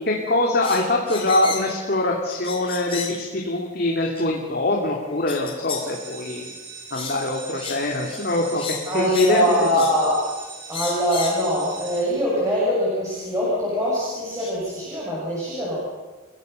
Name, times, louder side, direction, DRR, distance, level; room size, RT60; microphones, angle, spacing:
voice 1, 0.1-6.5 6.9-8.6 8.9-9.4 9.7-9.9, left 2 dB, 50° left, -1 dB, 2.7 m, -23 dB
sound 1, 0.6-1.8 2.3-3.2 4.2-4.3 5.3-5.9 6.2-6.4 6.9-7.2 7.5-8.2 8.5-9.4 9.7-10.0 10.7-11.4 12.4-12.5 13.7-13.8 14.4-14.5, left 5 dB, 25° left, 3.9 m, -33 dB
sound 2, 5.7-12.0, right 5 dB, 60° right, 5.0 m, -40 dB
voice 2, 8.9-10.2 10.7-15.8, equal, 15° right, -7 dB, 7.0 m, -23 dB
30.0 x 16.0 x 6.8 m, 1.3 s
head